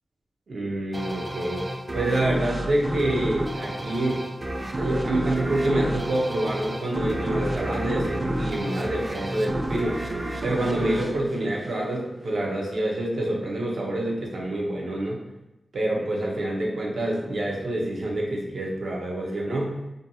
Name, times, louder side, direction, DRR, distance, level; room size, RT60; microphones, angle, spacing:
voice 1, 0.5-4.3 4.8-10.0 10.4-15.2 15.7-19.7, right 1 dB, 85° right, -2 dB, 0.5 m, -27 dB
sound 1, 0.9-12.2, right 1 dB, 35° right, 0.3 m, -30 dB
2.5 x 2.2 x 2.7 m, 0.94 s
wide cardioid pair, 80°, 0 cm